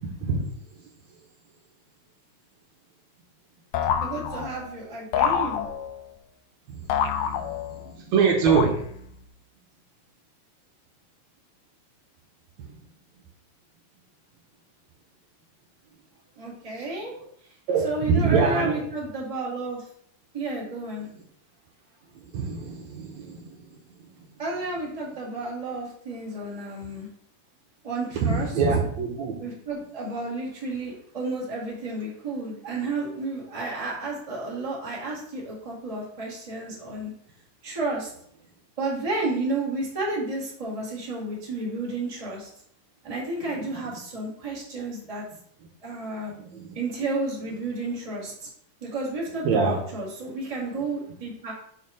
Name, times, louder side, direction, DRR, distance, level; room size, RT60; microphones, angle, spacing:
sound 1, 3.7-4.7 5.1-6.1 6.9-7.9 8.5-9.2, left 8 dB, 80° left, 1.8 m, -27 dB
voice 1, 4.0-5.6 16.4-17.1 17.8-19.8 20.3-21.1 24.4-27.1 27.8-28.5 29.4-37.1 37.6-38.1 38.8-42.5 43.0-45.2 45.8-46.3 46.7-48.5 48.8-51.5, right 2 dB, 15° right, -4 dB, 1.6 m, -31 dB
voice 2, 7.9-8.7 17.7-18.8 22.3-23.6 28.2-29.4 46.4-46.7 49.4-49.8, right 5 dB, 70° right, 1 dB, 2.2 m, -23 dB
5.7 x 4.7 x 5.5 m, 0.67 s
omnidirectional pair, 3.4 m